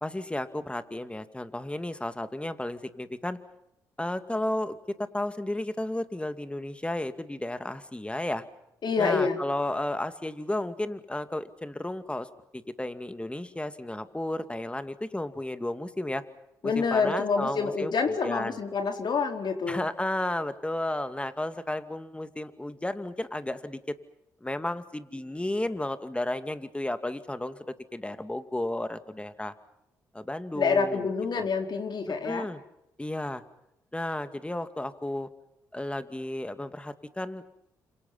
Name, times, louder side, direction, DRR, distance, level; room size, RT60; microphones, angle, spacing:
voice 1, 0.0-3.4 4.0-8.4 9.0-16.2 16.6-17.9 18.2-18.6 19.7-23.8 24.4-29.5 30.1-31.1 31.3-31.5 32.2-32.6 33.0-33.4 33.9-35.3 35.7-37.4, left 1 dB, 15° left, 10 dB, 2.4 m, -33 dB
voice 2, 8.8-9.4 16.6-19.9 30.5-32.5, left 5 dB, 55° left, 5 dB, 4.3 m, -27 dB
30.0 x 27.0 x 5.7 m, 0.85 s
hypercardioid pair, 45°, 9 cm